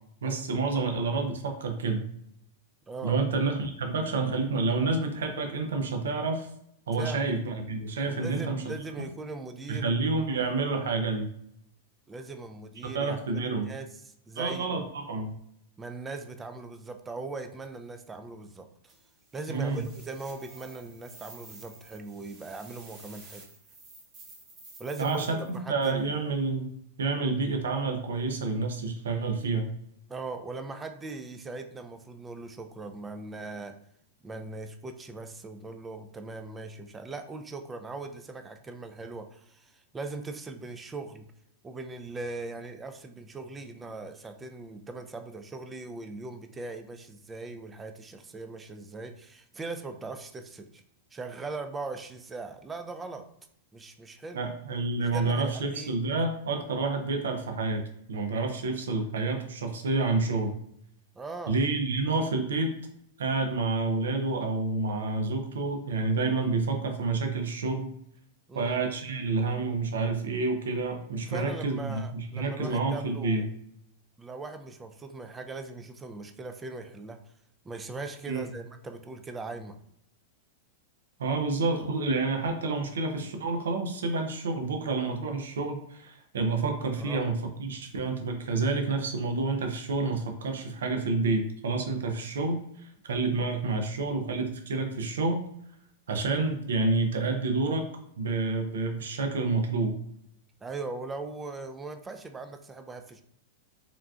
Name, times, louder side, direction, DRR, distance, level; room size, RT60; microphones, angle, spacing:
voice 1, 0.2-2.0 3.0-6.5 6.9-8.7 9.7-11.3 12.8-13.7 14.4-15.3 19.5-19.8 25.0-29.7 54.3-60.5 61.5-62.7 63.2-67.9 68.5-73.4 78.3-78.4 81.2-95.4 96.1-97.8 98.2-100.0, right 3 dB, 80° right, 4 dB, 0.5 m, -29 dB
voice 2, 2.9-3.2 7.0-7.2 8.1-9.9 12.1-13.9 14.3-14.8 15.8-18.7 19.3-23.5 24.8-26.2 30.1-33.7 34.2-41.3 41.6-50.8 51.1-53.3 53.7-54.5 55.0-56.0 61.2-61.5 68.5-68.8 71.2-73.5 74.2-77.2 77.6-79.8 87.0-87.2 100.6-103.2, right 3 dB, 15° right, 7 dB, 0.4 m, -40 dB
sound 1, 18.9-26.1, right 3 dB, 35° right, 0.9 m, -51 dB
3.8 x 2.3 x 2.3 m, 0.72 s
hypercardioid pair, 120°, 0 cm